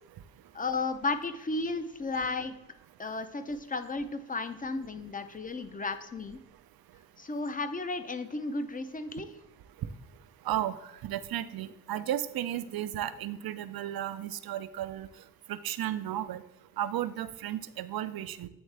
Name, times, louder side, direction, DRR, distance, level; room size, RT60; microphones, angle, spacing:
voice 1, 0.5-2.6 3.0-6.4 7.2-9.3, left 3 dB, 25° left, 10 dB, 0.5 m, -34 dB
voice 2, 10.4-15.1 15.5-16.4 16.8-18.5, right 12 dB, 75° right, 13 dB, 0.5 m, -34 dB
8.8 x 3.5 x 3.3 m, 0.92 s
cardioid pair, 60°, 37 cm